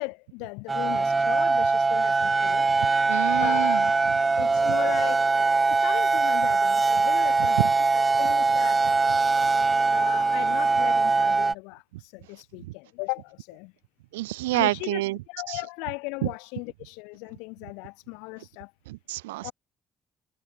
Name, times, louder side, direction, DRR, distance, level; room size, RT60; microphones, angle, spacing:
voice 1, 0.0-2.7 3.4-8.8 9.9-13.7 14.5-15.0 15.3-18.7 19.4-19.5, left 30 dB, 70° left, 3.0 m, -37 dB
sound 1, 0.7-11.5, right 3 dB, 25° right, 0.7 m, -22 dB
voice 2, 3.1-3.8 7.4-7.5 14.1-15.2 15.5-15.6 16.2-16.3 18.9-19.5, right 19 dB, 75° right, 2.4 m, -28 dB
figure-of-eight pair, 45°, 0 cm